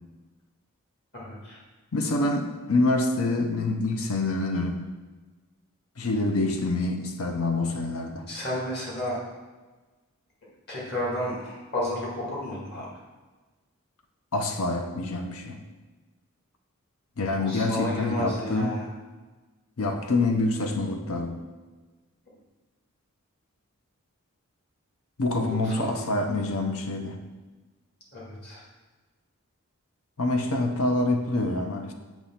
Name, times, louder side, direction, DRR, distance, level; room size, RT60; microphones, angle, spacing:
voice 1, 1.1-1.6 8.3-9.2 10.7-12.9 17.4-18.9 25.3-26.1 28.1-28.6, left 1 dB, 45° left, -5 dB, 1.9 m, -32 dB
voice 2, 1.9-4.8 6.0-8.3 14.3-15.6 17.2-18.8 19.8-21.4 25.2-27.2 30.2-31.9, left 2 dB, 75° left, 5 dB, 0.7 m, -26 dB
7.0 x 3.0 x 5.7 m, 1.3 s
head